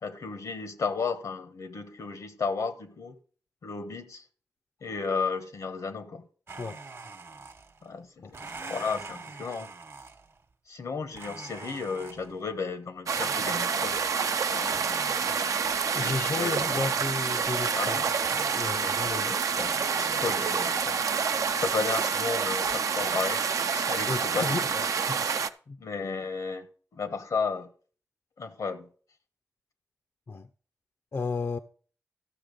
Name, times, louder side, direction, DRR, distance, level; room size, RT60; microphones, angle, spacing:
voice 1, 0.0-3.1 3.6-4.2 4.8-6.3 7.8-9.7 10.7-14.1 14.4-14.9 15.9-16.9 17.7-18.1 18.8-21.0 21.5-23.5 23.7-24.8 25.8-26.7 26.9-27.7 28.4-28.9, left 4 dB, 80° left, 1.1 m, -34 dB
Domestic sounds home sounds, 6.5-7.9 8.3-10.4 11.1-12.4 13.1-14.3 14.7-16.0 16.6-17.7 18.2-19.3 19.6-20.8, right 4 dB, 50° right, 1.0 m, -44 dB
sound 1, 13.1-25.5, right 6 dB, 80° right, 0.5 m, -28 dB
voice 2, 15.9-18.0 18.5-19.3 24.1-24.7 25.0-25.2 25.7-25.8 30.3-30.5 31.1-31.6, left 4 dB, 50° left, 0.5 m, -33 dB
13.0 x 6.0 x 5.2 m
cardioid pair, 60°, 6 cm